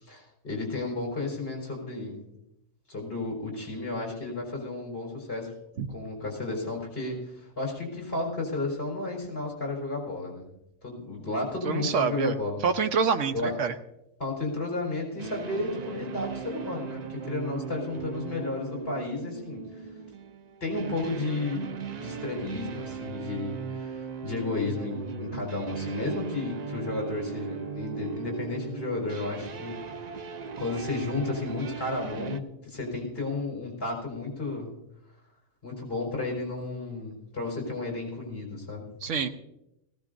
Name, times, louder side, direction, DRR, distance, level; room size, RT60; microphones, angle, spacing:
voice 1, 0.0-2.2 2.9-5.5 5.9-10.4 10.8-12.6 13.3-13.5 14.2-19.9 20.6-30.3 30.6-34.7 35.6-38.9, left 2 dB, 40° left, -1 dB, 4.5 m, -33 dB
voice 2, 11.6-12.3 12.6-13.7 39.0-39.3, right 6 dB, 60° right, 8 dB, 1.1 m, -26 dB
sound 1, 15.2-32.4, right 6 dB, 85° right, 0.3 m, -38 dB
19.0 x 16.5 x 2.6 m, 0.84 s
omnidirectional pair, 1.5 m